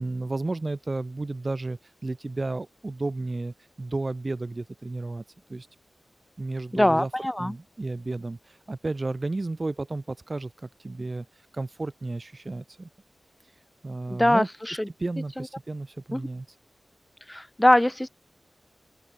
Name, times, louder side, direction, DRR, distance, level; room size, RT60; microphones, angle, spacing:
voice 1, 0.0-5.2 5.5-5.7 6.4-7.1 7.4-11.3 11.5-12.9 13.8-14.5 15.0-16.5, right 2 dB, 35° right, 0.6 m, -32 dB
voice 2, 6.7-7.5 14.1-14.9 15.4-15.5 16.1-16.3 17.3-18.1, left 1 dB, 10° left, 0.7 m, -22 dB
open air
wide cardioid pair, 95°, 0 cm